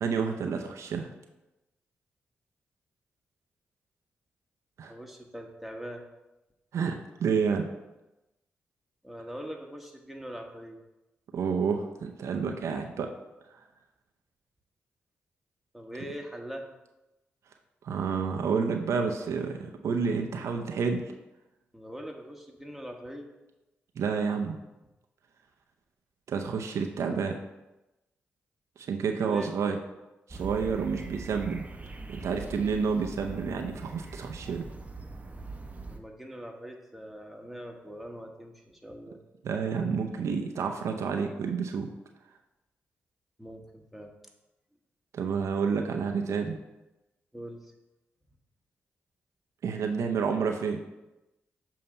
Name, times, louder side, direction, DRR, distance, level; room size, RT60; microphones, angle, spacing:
voice 1, 0.0-1.1 4.8-4.9 6.7-7.7 11.3-13.1 17.8-21.0 24.0-24.6 26.3-27.4 28.8-29.8 30.3-31.7 32.1-34.6 35.8-35.9 39.4-41.9 45.1-46.6 49.6-50.8, right 5 dB, 70° right, 4 dB, 0.6 m, -29 dB
voice 2, 4.9-6.1 9.0-10.8 15.7-16.7 21.7-23.3 29.2-29.5 35.9-39.2 43.4-44.1 47.3-47.7, equal, ahead, 1 dB, 1.2 m, -42 dB
sound 1, 30.3-36.0, right 3 dB, 25° right, 0.8 m, -42 dB
7.0 x 2.8 x 5.3 m, 0.99 s
supercardioid pair, 45°, 5 cm